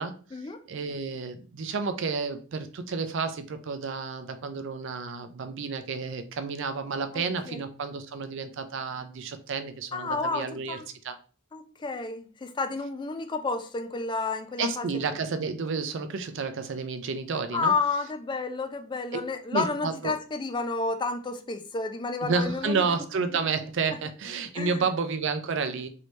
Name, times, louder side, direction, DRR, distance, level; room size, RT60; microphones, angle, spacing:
voice 1, 0.7-10.8 11.0-11.2 14.6-17.7 19.1-19.2 19.5-20.2 22.2-25.9, right 4 dB, 65° right, 0.5 m, -31 dB
voice 2, 7.1-7.6 9.9-10.9 11.5-14.9 17.5-22.9 24.5-24.8, left 3 dB, 25° left, 0.4 m, -31 dB
3.2 x 2.7 x 3.1 m
head